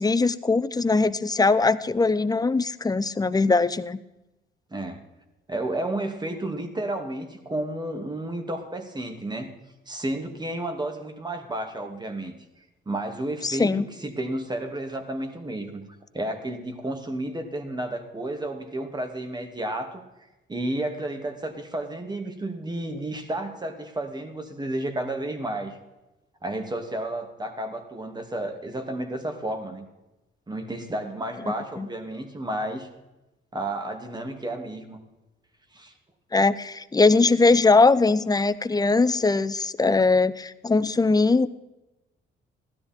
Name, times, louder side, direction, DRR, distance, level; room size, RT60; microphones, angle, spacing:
voice 1, 0.0-4.0 13.4-13.9 31.5-31.9 36.3-41.5, left 3 dB, 20° left, 13 dB, 0.7 m, -21 dB
voice 2, 4.7-5.0 5.5-9.5 9.9-12.3 12.9-15.8 16.1-20.0 20.5-25.8 26.4-29.9 30.5-32.9 33.5-35.0 35.7-35.9, right 1 dB, 20° right, 6 dB, 2.4 m, -32 dB
16.5 x 12.0 x 4.5 m, 1.0 s
cardioid pair, 90°, 20 cm